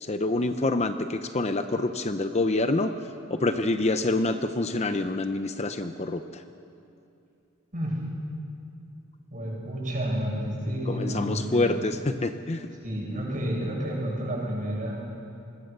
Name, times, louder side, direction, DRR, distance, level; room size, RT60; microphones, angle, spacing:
voice 1, 0.0-2.9 3.3-6.4 10.9-12.6, left 2 dB, 30° left, 8 dB, 0.7 m, -26 dB
voice 2, 9.3-11.7 12.8-14.9, equal, 40° right, -3 dB, 7.4 m, -30 dB
26.0 x 21.5 x 6.8 m, 2.7 s
head